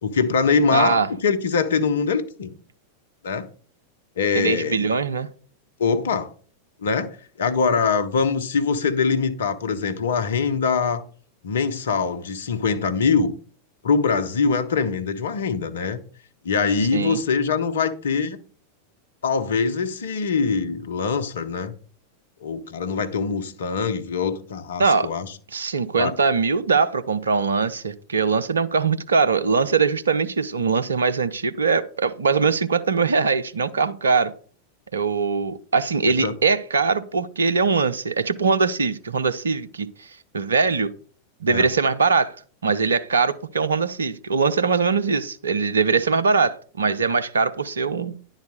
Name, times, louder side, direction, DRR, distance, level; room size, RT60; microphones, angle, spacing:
voice 1, 0.0-2.6 3.2-3.5 4.2-4.9 5.8-6.3 6.8-11.0 11.4-13.3 13.8-16.0 16.4-18.4 19.2-21.7 22.4-25.3 26.0-26.2 36.2-36.3 41.5-41.7, left 5 dB, 65° left, 0.9 m, -23 dB
voice 2, 0.7-1.1 4.3-5.3 16.9-17.2 24.8-25.1 25.5-34.3 34.9-40.9 41.4-42.4 42.6-48.1, right 5 dB, 70° right, 0.6 m, -22 dB
10.5 x 4.1 x 6.4 m
figure-of-eight pair, 90°, 0 cm